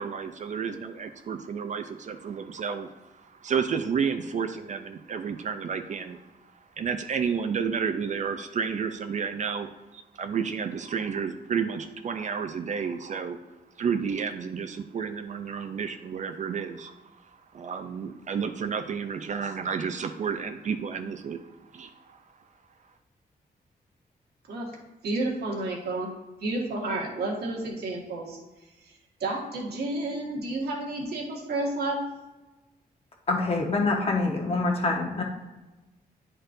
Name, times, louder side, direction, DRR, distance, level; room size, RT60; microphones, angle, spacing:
voice 1, 0.0-6.2 6.8-13.4 13.8-22.2, right 6 dB, 50° right, 8 dB, 0.4 m, -31 dB
voice 2, 25.0-26.1 26.4-28.4 28.8-28.9 29.2-32.0, right 2 dB, 85° right, -2 dB, 1.6 m, -31 dB
voice 3, 33.3-35.2, left 3 dB, 40° left, 1 dB, 1.1 m, -25 dB
9.8 x 4.4 x 2.6 m, 1.1 s
wide cardioid pair, 135°, 16 cm